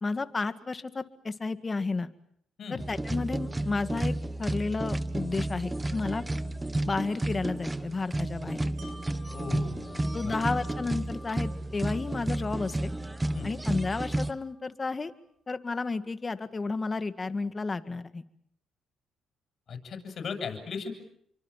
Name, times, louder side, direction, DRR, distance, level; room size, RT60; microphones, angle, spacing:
voice 1, 0.0-2.1 2.7-4.1 4.4-6.2 6.9-8.6 10.1-12.9 13.4-15.1 15.5-18.2, left 3 dB, 30° left, 11 dB, 2.0 m, -32 dB
sound 1, 2.8-14.3, right 1 dB, 15° right, 1.4 m, -32 dB
Wind chime, 8.8-14.6 15.0-15.1, left 1 dB, 60° right, 7.1 m, -52 dB
voice 2, 9.3-10.4 13.3-13.5 19.7-20.9, left 5 dB, 55° left, 6 dB, 8.0 m, -37 dB
29.5 x 24.5 x 7.4 m, 0.68 s
cardioid pair, 90°, 0 cm